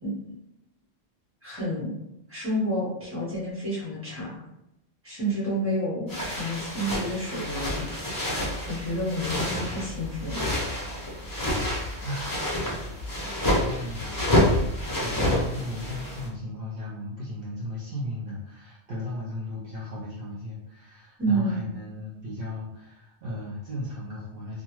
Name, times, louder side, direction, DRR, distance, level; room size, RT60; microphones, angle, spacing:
voice 1, 0.0-0.3 1.4-1.9 2.3-4.3 5.0-7.9 8.7-10.4 21.2-21.6, equal, 10° right, -8 dB, 1.2 m, -29 dB
sound 1, 6.1-16.3, left 1 dB, 25° left, 0.5 m, -28 dB
voice 2, 13.7-14.5 15.0-24.6, left 1 dB, 65° right, -6 dB, 0.7 m, -35 dB
2.4 x 2.4 x 2.9 m, 0.85 s
omnidirectional pair, 1.1 m